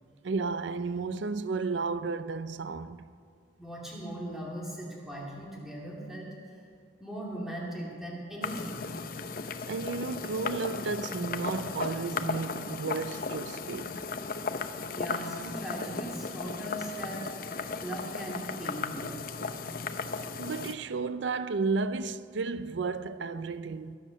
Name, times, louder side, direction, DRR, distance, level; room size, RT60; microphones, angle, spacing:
voice 1, 0.2-3.0 9.7-14.0 20.4-24.0, right 4 dB, 85° right, 0.5 m, -33 dB
voice 2, 3.6-6.3 7.0-8.8 14.9-17.3 17.8-19.2, right 1 dB, ahead, 2.5 m, -39 dB
sound 1, 8.4-20.7, left 4 dB, 50° left, 0.7 m, -36 dB
21.0 x 7.8 x 6.4 m
head